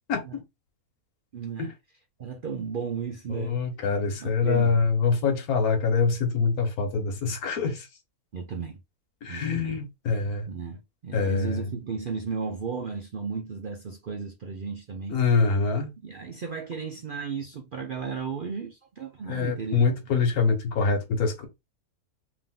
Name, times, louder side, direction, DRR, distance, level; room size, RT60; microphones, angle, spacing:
voice 1, 1.3-1.7 2.2-3.5 4.2-4.8 8.3-8.8 9.3-9.8 10.5-15.2 16.0-19.8, right 5 dB, 70° right, 0.5 m, -34 dB
voice 2, 3.3-7.9 9.2-10.5 11.1-11.6 15.1-15.9 19.3-21.5, left 5 dB, 75° left, 1.5 m, -25 dB
3.5 x 2.8 x 3.7 m
omnidirectional pair, 1.6 m